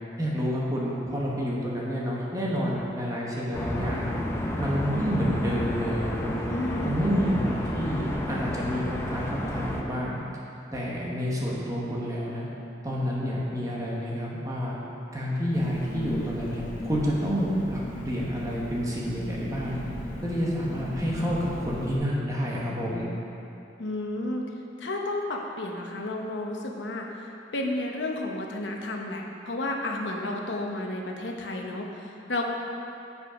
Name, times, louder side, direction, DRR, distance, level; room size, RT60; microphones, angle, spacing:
voice 1, 0.2-4.1 4.6-6.4 6.8-10.2 10.7-12.5 12.8-14.8 15.1-19.8 20.2-23.1, equal, 20° right, -5 dB, 1.1 m, -29 dB
sound 1, 3.5-9.8, left 1 dB, 15° left, 0.6 m, -31 dB
voice 2, 6.5-6.9 23.8-24.5 24.8-27.1 27.5-32.5, left 2 dB, 85° left, 0 dB, 0.9 m, -32 dB
Engine, 15.5-22.0, left 1 dB, 50° left, 1.2 m, -37 dB
8.1 x 5.4 x 5.0 m, 2.7 s
head